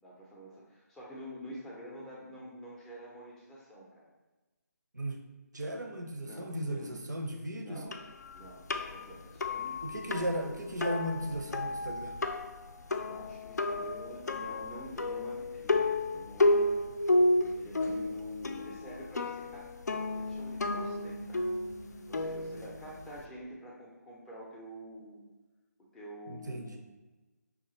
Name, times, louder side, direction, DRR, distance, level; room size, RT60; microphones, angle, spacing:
voice 1, 0.0-4.1 6.2-7.0 7.5-7.9 8.3-9.9 13.0-16.8 17.3-21.4 21.9-25.2 25.8-26.8, equal, 5° left, -5 dB, 0.4 m, -48 dB
voice 2, 5.5-7.9 9.8-12.1 26.3-26.8, right 1 dB, 80° right, 3 dB, 0.6 m, -36 dB
sound 1, 7.9-23.3, left 2 dB, 70° left, 0.4 m, -32 dB
5.4 x 2.3 x 2.9 m, 1.2 s
figure-of-eight pair, 150°, 9 cm